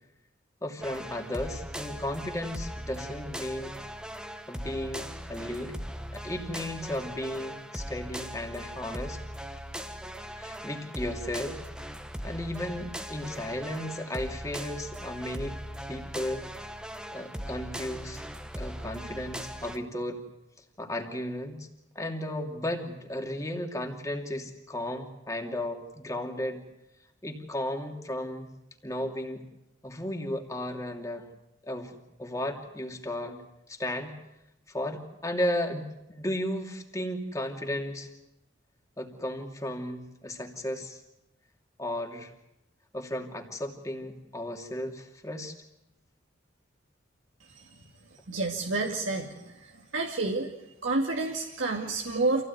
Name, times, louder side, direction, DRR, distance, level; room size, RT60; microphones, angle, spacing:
voice 1, 0.6-3.8 4.5-5.8 6.1-9.2 10.4-11.6 12.2-15.6 15.9-16.5 17.1-18.2 18.5-20.2 20.8-21.7 21.9-26.6 27.2-28.5 28.8-29.4 29.8-31.3 31.6-33.4 33.7-34.2 34.7-38.1 39.0-41.0 41.8-42.3 42.9-45.5, left 1 dB, 15° left, 3 dB, 2.8 m, -34 dB
sound 1, 0.8-19.8, equal, 5° right, 1.2 m, -39 dB
voice 2, 48.3-50.5 50.8-52.4, right 3 dB, 80° right, 1 dB, 2.3 m, -29 dB
27.0 x 16.5 x 9.5 m, 0.91 s
head